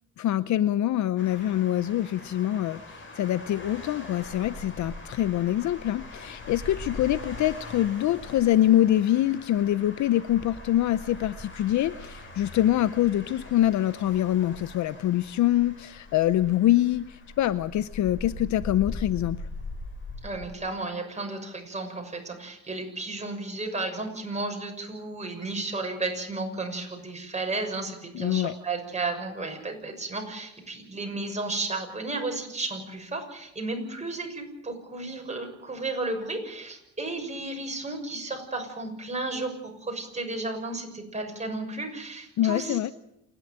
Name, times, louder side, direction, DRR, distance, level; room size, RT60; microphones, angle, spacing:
voice 1, 0.2-19.4 28.1-28.5 42.4-42.9, left 13 dB, 70° left, 15 dB, 0.7 m, -25 dB
sound 1, 1.2-20.6, left 2 dB, 40° left, 7.5 m, -42 dB
voice 2, 20.2-42.9, right 2 dB, 25° right, 3 dB, 6.5 m, -33 dB
28.0 x 11.0 x 8.9 m, 0.83 s
cardioid pair, 90°, 30 cm